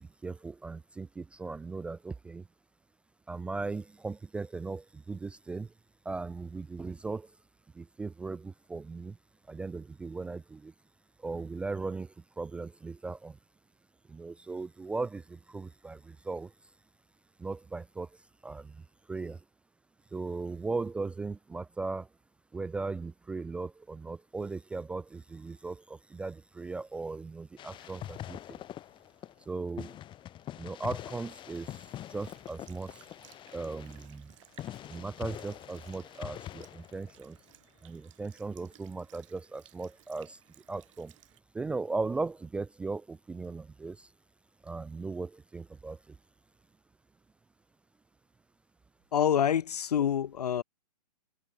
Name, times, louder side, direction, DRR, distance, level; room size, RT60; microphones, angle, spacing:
voice 1, 0.0-2.4 3.3-5.7 6.1-7.3 7.7-9.2 9.5-10.7 11.2-13.4 14.1-16.5 17.4-18.1 18.4-18.8 19.1-19.4 20.1-22.1 22.5-28.6 29.5-30.0 30.6-31.8 32.1-33.0 33.5-34.3 34.9-37.4 37.8-40.4 40.7-41.1 41.5-44.1 44.6-46.2, right 3 dB, 5° right, 0.4 m, -38 dB
sound 1, 27.6-29.4 29.8-37.5, left 12 dB, 25° left, 3.6 m, -44 dB
Sink (filling or washing) / Liquid, 31.5-41.4, right 16 dB, 50° right, 4.7 m, -61 dB
voice 2, 49.1-50.6, left 9 dB, 70° left, 0.8 m, -26 dB
figure-of-eight pair, 120°, 21 cm